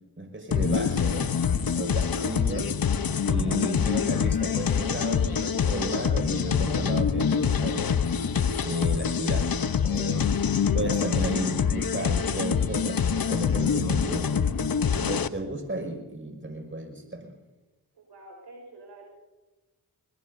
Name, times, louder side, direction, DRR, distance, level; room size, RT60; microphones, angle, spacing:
voice 1, 0.2-1.3 1.8-2.7 3.3-8.0 8.6-9.5 9.8-14.5 15.0-17.3, right 1 dB, 30° right, 4 dB, 5.7 m, -33 dB
sound 1, 0.5-15.3, left 7 dB, 60° left, 0.9 m, -25 dB
voice 2, 17.9-19.1, right 2 dB, 85° right, 1 dB, 5.2 m, -47 dB
24.0 x 20.0 x 2.7 m, 1.1 s
cardioid pair, 40°, 40 cm